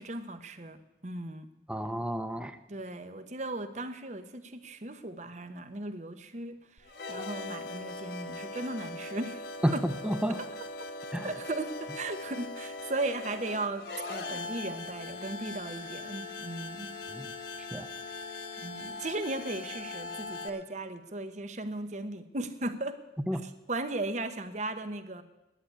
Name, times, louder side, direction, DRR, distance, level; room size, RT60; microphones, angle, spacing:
voice 1, 0.0-1.5 2.7-9.4 9.7-9.9 11.2-16.9 18.6-23.0 23.4-25.2, right 2 dB, 40° right, 10 dB, 0.9 m, -37 dB
voice 2, 1.7-2.6 9.6-10.4 11.1-11.3 17.1-17.3 17.7-17.9 23.3-23.4, equal, 5° right, 10 dB, 0.6 m, -30 dB
sound 1, 6.8-20.5, left 3 dB, 70° left, 1.5 m, -40 dB
10.5 x 9.8 x 9.5 m, 1.0 s
head